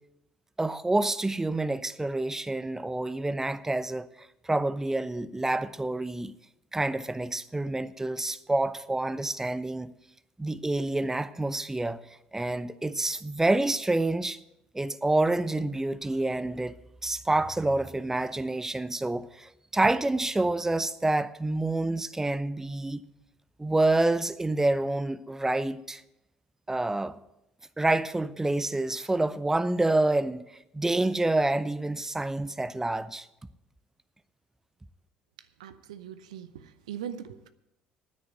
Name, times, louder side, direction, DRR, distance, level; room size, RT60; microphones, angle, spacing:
voice 1, 0.6-6.3 6.7-9.9 10.4-12.0 12.3-14.4 14.7-16.7 17.0-23.0 23.6-26.0 26.7-27.2 27.8-30.5 30.7-33.3, right 2 dB, 10° right, 0.7 m, -28 dB
voice 2, 35.6-37.5, right 9 dB, 85° right, 0.6 m, -40 dB
9.8 x 9.6 x 7.9 m
hypercardioid pair, 60°, 4 cm